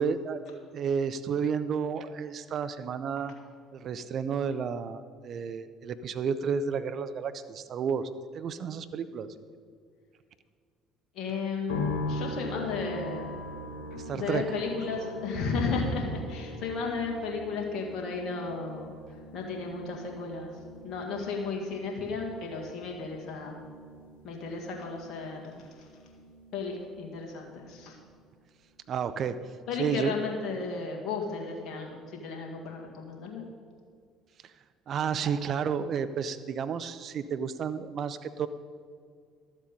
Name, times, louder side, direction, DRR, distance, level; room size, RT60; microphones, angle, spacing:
voice 1, 0.0-3.3 3.7-8.1 8.3-9.3 14.0-14.5 28.9-29.4 29.8-30.1 34.9-38.5, right 6 dB, 50° right, 12 dB, 0.5 m, -31 dB
voice 2, 11.1-13.3 14.1-18.9 19.3-23.6 24.2-25.9 26.5-28.0 29.7-33.4, left 4 dB, 55° left, 0 dB, 1.9 m, -34 dB
sound 1, 11.7-26.9 27.2-28.1, left 2 dB, 85° left, 1.3 m, -41 dB
12.0 x 7.4 x 5.2 m, 2.1 s
hypercardioid pair, 55°, 0 cm